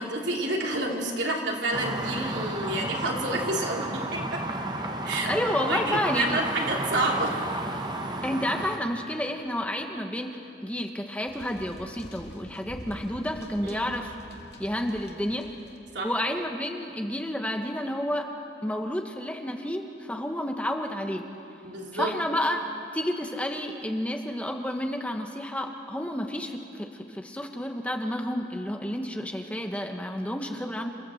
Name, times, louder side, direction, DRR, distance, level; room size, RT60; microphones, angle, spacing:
voice 1, 0.0-4.4 5.0-5.3 5.6-7.4 13.6-13.9 15.9-16.1 21.6-22.1, right 2 dB, 80° right, -1 dB, 3.1 m, -29 dB
sound 1, 1.7-8.8, right 1 dB, 25° right, 1.2 m, -32 dB
voice 2, 5.0-6.4 8.2-14.1 14.6-15.5 16.0-18.3 18.6-21.2 21.9-30.9, left 1 dB, 10° left, 3 dB, 1.1 m, -30 dB
sound 2, 11.3-15.8, left 1 dB, 65° left, 2.2 m, -46 dB
28.5 x 14.5 x 7.8 m, 2.7 s
head